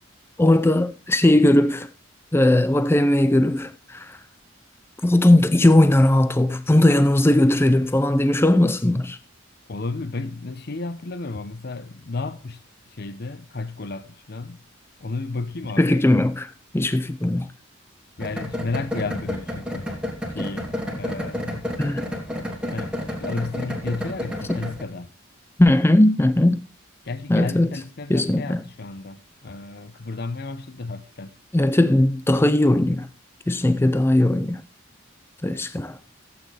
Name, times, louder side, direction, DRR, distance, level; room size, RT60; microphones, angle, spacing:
voice 1, 0.4-1.9 2.3-4.2 5.0-9.2 15.8-16.5 16.7-17.5 21.8-22.0 24.5-24.6 25.6-26.7 27.3-27.7 28.1-28.6 31.5-33.1 33.5-34.6 35.4-36.0, left 1 dB, 10° left, 0.4 m, -18 dB
voice 2, 9.7-12.6 12.9-14.6 15.0-16.1 18.2-20.0 20.3-21.7 22.7-25.1 27.0-31.4, left 3 dB, 50° left, 0.7 m, -32 dB
sound 1, 18.2-24.8, left 1 dB, 5° right, 2.8 m, -30 dB
15.0 x 8.7 x 3.3 m
head